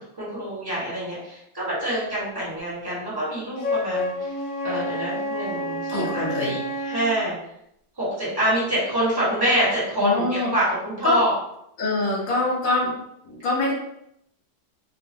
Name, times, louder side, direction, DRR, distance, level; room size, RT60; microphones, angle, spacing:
voice 1, 0.2-4.3 4.6-7.4 8.0-11.3, right 1 dB, 15° right, -7 dB, 1.2 m, -26 dB
Wind instrument woodwind instrument, 3.6-7.1, left 1 dB, 70° left, 0.5 m, -29 dB
voice 2, 5.9-6.5 10.0-10.5 11.0-11.2 11.8-12.9 13.2-13.7, left 2 dB, 40° left, -2 dB, 0.8 m, -24 dB
2.5 x 2.2 x 3.6 m, 0.77 s
omnidirectional pair, 1.7 m